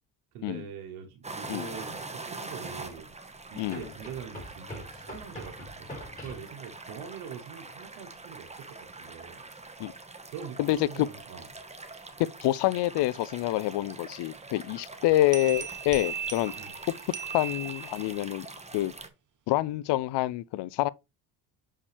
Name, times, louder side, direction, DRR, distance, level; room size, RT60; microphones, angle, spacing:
voice 1, 0.3-3.1 3.5-9.4 10.3-11.5 16.6-16.7, right 7 dB, 90° right, 1.1 m, -43 dB
sound 1, 1.2-19.1, right 3 dB, 15° right, 1.3 m, -44 dB
sound 2, 1.3-1.4 3.7-6.5, left 2 dB, 15° left, 4.5 m, -44 dB
voice 2, 10.6-11.1 12.2-16.5 17.3-18.5 18.7-18.9 19.5-20.9, left 15 dB, 65° left, 0.5 m, -27 dB
sound 3, 15.3-18.3, right 7 dB, 40° right, 1.4 m, -37 dB
6.9 x 5.4 x 3.3 m
supercardioid pair, 65°, 46 cm